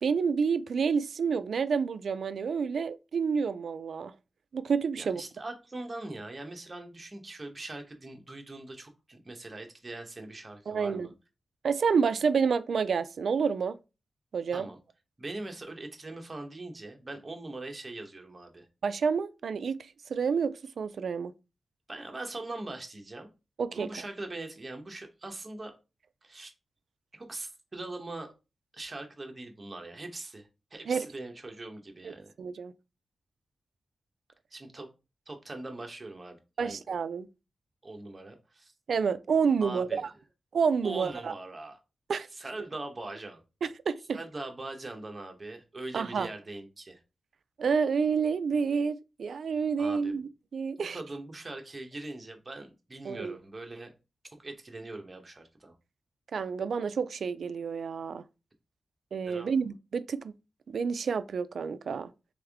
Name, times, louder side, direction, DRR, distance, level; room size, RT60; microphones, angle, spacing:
voice 1, 0.0-4.1 4.5-5.2 10.7-11.1 11.6-13.8 14.3-14.7 18.8-21.3 23.6-23.9 30.9-31.1 32.0-32.7 36.6-37.3 38.9-40.0 40.5-41.3 42.1-42.3 43.6-44.2 45.9-46.3 47.6-50.2 50.5-51.0 53.1-53.3 56.3-58.2 59.1-60.3 60.7-62.1, right 6 dB, 70° right, 0.3 m, -29 dB
voice 2, 5.0-11.1 14.5-14.8 15.2-18.7 21.9-23.3 23.7-25.7 26.2-26.5 27.1-28.3 28.7-32.3 34.5-34.9 35.3-36.8 37.8-38.7 39.6-40.1 40.8-41.8 42.3-43.4 44.1-47.0 49.8-50.1 50.9-53.9 54.4-55.8 59.3-59.5, right 2 dB, 30° right, 1.0 m, -41 dB
3.5 x 3.5 x 3.5 m
wide cardioid pair, 100°, 0 cm